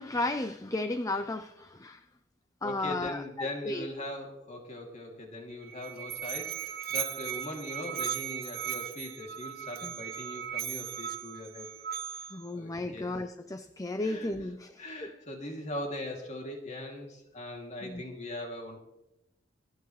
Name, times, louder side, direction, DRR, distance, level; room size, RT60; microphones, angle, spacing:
voice 1, 0.0-2.0 2.6-3.9 9.8-9.9 12.3-15.1 17.8-18.0, left 2 dB, 20° left, 9 dB, 0.5 m, -34 dB
voice 2, 2.6-11.7 12.5-13.2 14.0-14.3 14.8-18.8, left 1 dB, 40° left, 1 dB, 2.8 m, -40 dB
Musical instrument, 5.5-12.5, right 10 dB, 50° right, 0.7 m, -37 dB
27.5 x 9.4 x 3.2 m, 0.89 s
head